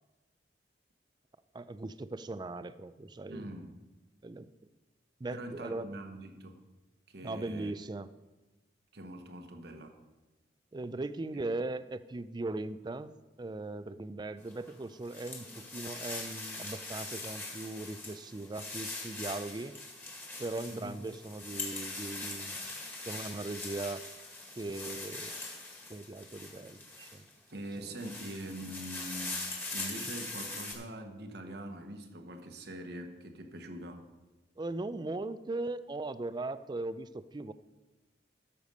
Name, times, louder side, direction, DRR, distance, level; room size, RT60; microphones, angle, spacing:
voice 1, 1.5-3.5 4.2-4.5 5.2-6.0 7.2-8.1 10.7-19.8 20.4-22.7 23.1-24.0 24.6-25.3 25.9-27.3 27.8-28.1 34.6-37.5, right 2 dB, 25° right, 13 dB, 0.4 m, -39 dB
voice 2, 3.3-3.7 5.3-6.6 7.1-7.7 8.9-10.0 11.3-11.4 20.7-20.9 27.5-34.1, right 1 dB, 60° right, 5 dB, 1.2 m, -43 dB
sound 1, 14.5-27.3 27.8-30.7, left 2 dB, 10° left, 1.8 m, -42 dB
13.0 x 6.8 x 5.4 m, 1.1 s
head